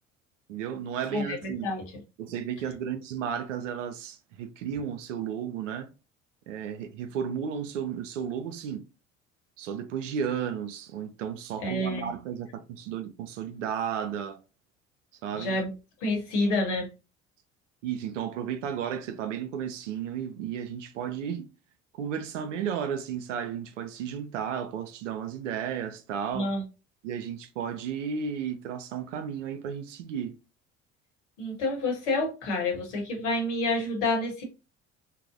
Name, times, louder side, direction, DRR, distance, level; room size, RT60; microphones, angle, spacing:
voice 1, 0.5-1.7 2.2-5.9 6.5-8.8 9.6-14.4 15.2-15.6 17.8-21.5 21.9-26.5 27.0-30.4, right 8 dB, 75° right, 0.5 m, -33 dB
voice 2, 1.1-1.8 11.6-12.1 15.4-15.7 16.0-16.9 26.3-26.6 31.4-34.4, left 2 dB, 70° left, 1.1 m, -28 dB
3.1 x 2.0 x 2.4 m
figure-of-eight pair, 60°, 37 cm